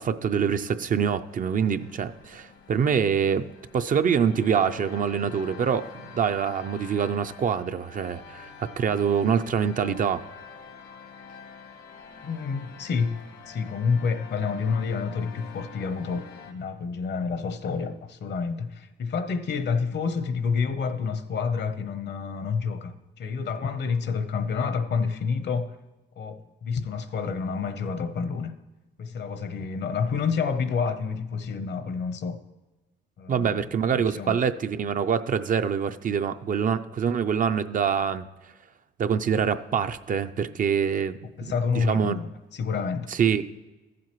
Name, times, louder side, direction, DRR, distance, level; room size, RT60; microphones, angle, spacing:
voice 1, 0.0-3.5 3.7-5.9 6.1-10.2 33.3-38.3 39.0-42.2 43.1-43.4, right 7 dB, 45° right, 0.4 m, -25 dB
sound 1, 1.3-16.5, left 6 dB, 80° left, 1.2 m, -47 dB
voice 2, 12.2-13.2 13.5-25.7 26.2-28.6 29.0-32.4 33.2-33.6 33.9-34.4 41.4-43.1, left 5 dB, 60° left, 0.8 m, -29 dB
14.0 x 7.6 x 3.0 m
cardioid pair, 90°, 20 cm